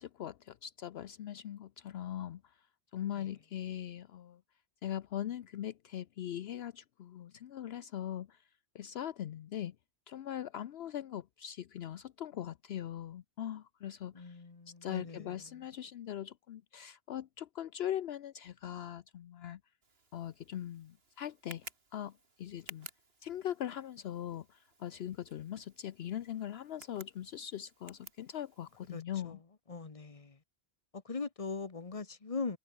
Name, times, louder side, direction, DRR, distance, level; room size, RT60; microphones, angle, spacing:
voice 1, 0.0-2.7 2.9-4.4 4.8-8.5 8.7-9.8 10.1-14.4 14.8-19.6 20.1-21.7 21.9-22.9 23.2-29.4, left 11 dB, 70° left, 0.9 m, -41 dB
voice 2, 14.1-15.3 28.9-29.4 29.7-30.4 30.9-32.6, left 4 dB, 30° left, 1.4 m, -40 dB
Tick, 19.8-29.0, right 3 dB, 65° right, 2.8 m, -56 dB
omnidirectional pair, 1.1 m